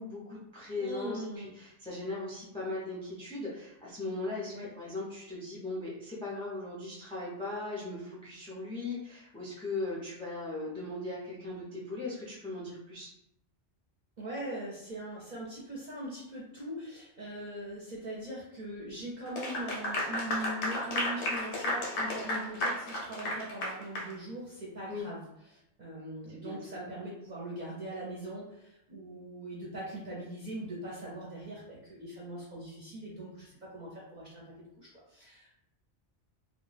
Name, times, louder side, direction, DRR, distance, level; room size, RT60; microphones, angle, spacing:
voice 1, 0.0-13.1 24.9-25.1 26.3-26.6, left 2 dB, 10° left, -6 dB, 0.4 m, -38 dB
voice 2, 0.8-1.5 4.5-4.7 14.2-25.2 25.5-34.4 34.8-35.5, right 1 dB, 50° right, -6 dB, 0.6 m, -41 dB
Clapping / Applause, 19.3-24.1, left 1 dB, 80° left, 0.9 m, -33 dB
2.2 x 2.2 x 3.2 m, 0.83 s
omnidirectional pair, 1.2 m